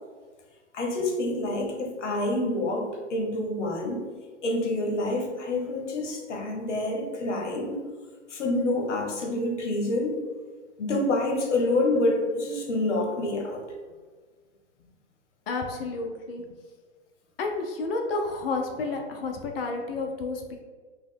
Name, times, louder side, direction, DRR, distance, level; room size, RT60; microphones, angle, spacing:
voice 1, 0.7-4.1 4.4-7.8 8.3-10.2 10.8-13.6, left 2 dB, 75° left, 1 dB, 0.9 m, -27 dB
voice 2, 15.5-16.4 17.4-20.6, left 3 dB, 55° left, 3 dB, 0.5 m, -30 dB
3.0 x 2.1 x 3.6 m, 1.4 s
hypercardioid pair, 125°, 35 cm